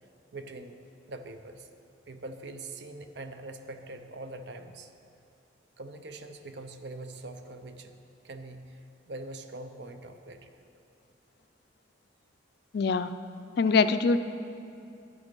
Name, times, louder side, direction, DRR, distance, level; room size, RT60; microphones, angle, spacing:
voice 1, 0.3-0.8 1.1-1.7 2.1-4.9 5.8-8.0 8.2-10.5, right 2 dB, 60° right, 8 dB, 0.6 m, -43 dB
voice 2, 12.7-13.1 13.6-14.2, left 4 dB, 55° left, 12 dB, 0.3 m, -23 dB
11.0 x 8.1 x 5.3 m, 2.7 s
head